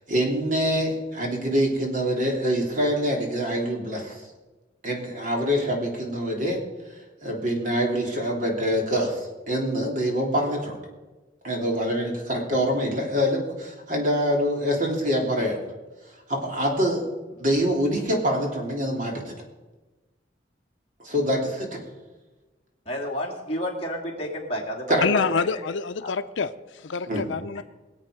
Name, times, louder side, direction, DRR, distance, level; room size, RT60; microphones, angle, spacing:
voice 1, 0.1-4.3 4.8-6.6 7.2-10.8 11.4-15.6 16.3-17.0 17.4-19.3 21.0-21.8 24.9-25.0 27.1-27.2, equal, 45° right, 3.1 m, -25 dB
voice 2, 22.9-25.0 25.5-25.6 26.0-26.1, equal, 30° left, 2.7 m, -30 dB
voice 3, 25.0-27.6, left 5 dB, 85° left, 0.6 m, -27 dB
23.0 x 8.1 x 5.1 m
head